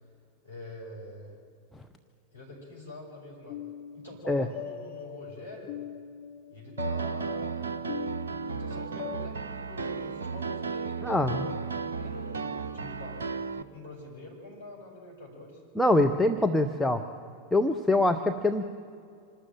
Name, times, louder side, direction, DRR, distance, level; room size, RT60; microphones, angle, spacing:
voice 1, 0.4-1.3 2.3-3.6 3.9-5.7 6.5-7.8 8.5-15.6, left 1 dB, 80° left, -3 dB, 6.4 m, -45 dB
sound 1, 3.5-9.3, left 10 dB, 50° left, 1.1 m, -42 dB
Piano, 6.8-13.6, right 5 dB, 70° right, 0.6 m, -34 dB
voice 2, 11.0-11.4 15.8-17.0 17.5-18.6, left 2 dB, 5° left, 5 dB, 0.9 m, -24 dB
26.0 x 13.0 x 9.0 m, 2.4 s
figure-of-eight pair, 90°, 0 cm